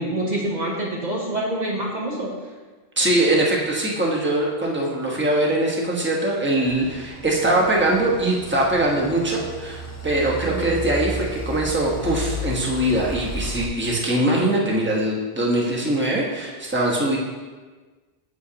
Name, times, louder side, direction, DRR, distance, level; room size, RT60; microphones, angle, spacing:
voice 1, 0.0-2.3 10.4-10.7, right 1 dB, 45° right, -3 dB, 1.0 m, -26 dB
voice 2, 3.0-17.2, right 1 dB, 10° right, -3 dB, 1.2 m, -22 dB
sound 1, 6.7-13.7, left 1 dB, 20° left, 0.5 m, -33 dB
9.6 x 7.3 x 2.9 m, 1.3 s
omnidirectional pair, 1.0 m